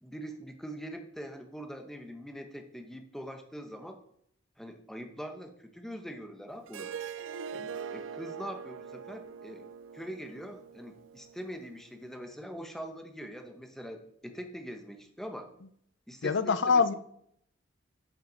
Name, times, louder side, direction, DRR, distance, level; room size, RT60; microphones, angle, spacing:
voice 1, 0.0-4.0 4.6-6.9 7.5-9.6 9.9-15.5 16.1-16.8, equal, ahead, 1.0 m, -43 dB
Harp, 6.7-11.8, right 7 dB, 85° right, 0.4 m, -42 dB
voice 2, 16.2-16.9, left 5 dB, 70° left, 0.5 m, -24 dB
12.0 x 6.2 x 4.0 m
head